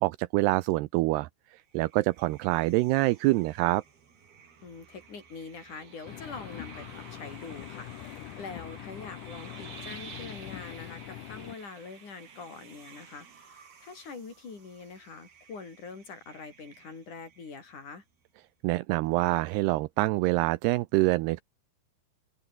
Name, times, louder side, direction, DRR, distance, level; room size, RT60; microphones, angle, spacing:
voice 1, 0.0-3.8 18.6-21.4, right 20 dB, 80° right, 2.7 m, -26 dB
sound 1, 1.7-18.0, right 6 dB, 65° right, 6.1 m, -52 dB
voice 2, 4.6-18.0, left 4 dB, 45° left, 6.3 m, -44 dB
Engine, 6.1-11.6, left 14 dB, 75° left, 1.9 m, -43 dB
open air
omnidirectional pair, 4.9 m